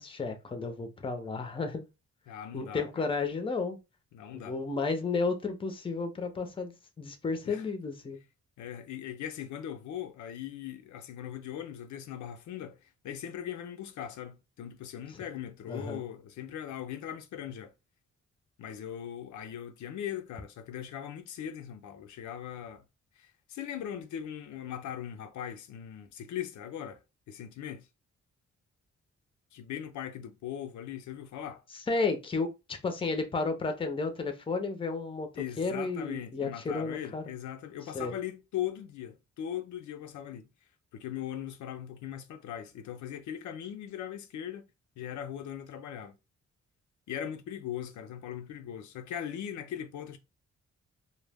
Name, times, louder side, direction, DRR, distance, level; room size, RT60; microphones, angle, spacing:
voice 1, 0.0-1.8 2.5-3.8 4.3-8.2 15.7-16.0 31.9-37.2 37.9-38.1, left 4 dB, 20° left, 0.5 m, -32 dB
voice 2, 2.3-3.0 4.1-4.5 7.5-7.6 8.6-12.8 13.0-17.7 18.6-22.8 23.2-27.0 27.3-27.9 29.5-31.6 35.4-40.5 40.9-44.7 45.0-46.2 47.1-50.2, left 10 dB, 80° left, 0.4 m, -39 dB
2.0 x 2.0 x 3.3 m
cardioid pair, 100°, 29 cm